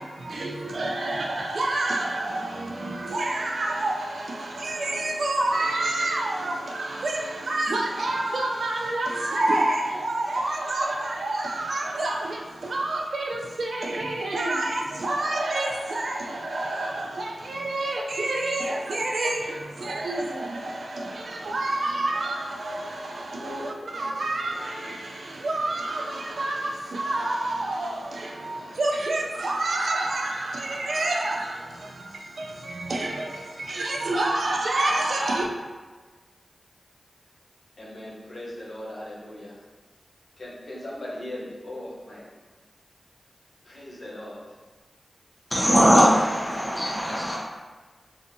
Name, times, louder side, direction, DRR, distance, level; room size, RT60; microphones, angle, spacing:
voice 1, 0.0-35.5, right 2 dB, 75° right, 0 dB, 0.3 m, -28 dB
voice 2, 23.3-24.2 37.8-39.7 40.4-42.3 43.6-44.5 45.7-46.6, left 1 dB, 65° left, -6 dB, 0.9 m, -39 dB
voice 3, 45.5-47.4, equal, 15° left, -5 dB, 0.9 m, -20 dB
2.6 x 2.4 x 2.6 m, 1.3 s
cardioid pair, 45°, 0 cm